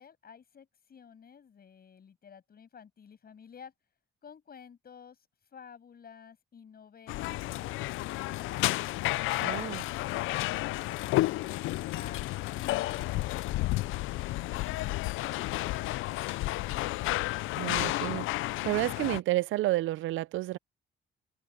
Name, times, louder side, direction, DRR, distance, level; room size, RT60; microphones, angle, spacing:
voice 1, 0.0-3.7 4.2-5.3 5.5-8.7 9.4-17.0, left 7 dB, 50° left, 7.5 m, -52 dB
sound 1, 7.1-19.2, left 18 dB, 85° left, 0.4 m, -31 dB
voice 2, 9.4-9.8 17.6-18.3 18.6-20.6, right 17 dB, 80° right, 0.4 m, -30 dB
cardioid pair, 90°, 20 cm